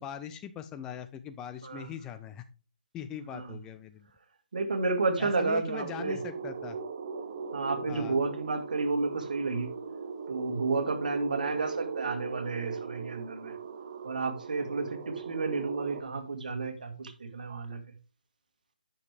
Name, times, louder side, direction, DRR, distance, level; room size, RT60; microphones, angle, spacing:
voice 1, 0.0-2.4 2.9-4.1 5.2-6.8 7.9-8.2, left 9 dB, 10° left, 10 dB, 0.4 m, -41 dB
voice 2, 4.5-6.2 7.5-9.7 10.3-13.5 14.0-17.8, right 3 dB, 60° right, 6 dB, 1.9 m, -31 dB
sound 1, 5.8-16.0, right 5 dB, 40° right, 1.0 m, -39 dB
9.8 x 6.4 x 3.3 m, 0.35 s
figure-of-eight pair, 150°, 5 cm